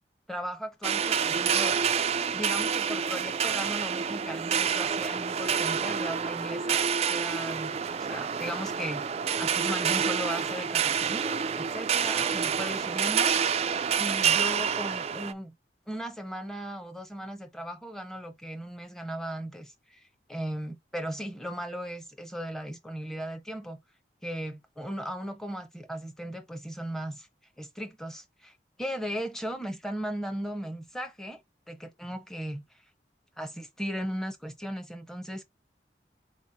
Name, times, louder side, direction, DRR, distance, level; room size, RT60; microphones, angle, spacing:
voice 1, 0.3-1.8 2.3-9.1 9.4-13.6 14.0-15.5 15.9-23.8 24.2-27.3 27.6-31.4 31.7-32.8 33.4-35.4, equal, 5° left, 0.7 m, -37 dB
sound 1, 0.8-15.3, right 7 dB, 35° right, 0.3 m, -28 dB
4.2 x 3.0 x 4.2 m
head